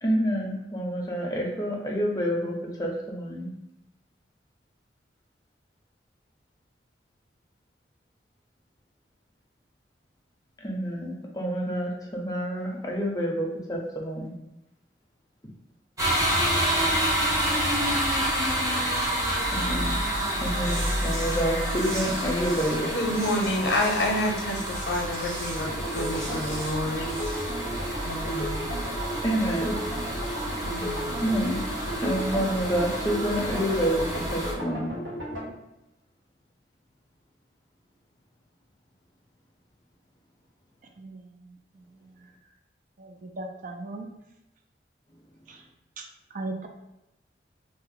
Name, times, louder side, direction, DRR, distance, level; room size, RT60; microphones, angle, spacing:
voice 1, 0.0-3.5 10.6-14.3 19.5-20.0 20.4-22.9 27.0-27.1 29.2-29.8 31.2-31.6 32.0-34.9, equal, 20° left, -2 dB, 0.5 m, -28 dB
sound 1, 16.0-34.5, right 1 dB, 20° right, 0.7 m, -29 dB
sound 2, 20.6-27.5, right 1 dB, 70° right, 1.4 m, -41 dB
voice 2, 22.9-27.1 28.0-28.7 30.6-31.2, left 1 dB, 70° left, 0 dB, 0.7 m, -29 dB
sound 3, 25.6-35.5, equal, 85° right, 1.0 m, -34 dB
voice 3, 43.0-44.1 46.0-46.1 46.3-46.7, right 2 dB, 45° right, 3 dB, 0.4 m, -36 dB
2.6 x 2.1 x 3.8 m, 0.91 s
head